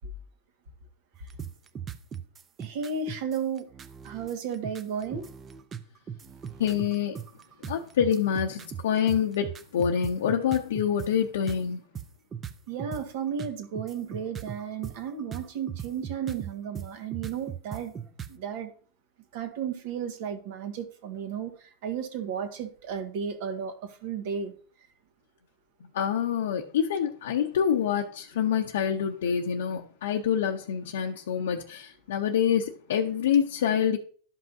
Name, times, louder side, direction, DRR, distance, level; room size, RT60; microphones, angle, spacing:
sound 1, 1.1-11.1 11.5-11.6 12.0-13.0 13.4-18.3, right 8 dB, 25° right, 0.6 m, -38 dB
voice 1, 2.6-3.7 4.0-5.3 12.7-17.9 18.3-18.7 19.3-21.5 21.8-23.7 24.0-24.5, right 7 dB, 65° right, 1.6 m, -33 dB
voice 2, 6.6-7.2 7.7-11.8 25.9-34.0, left 8 dB, 90° left, 0.7 m, -26 dB
12.0 x 5.5 x 2.7 m
supercardioid pair, 135°, 0 cm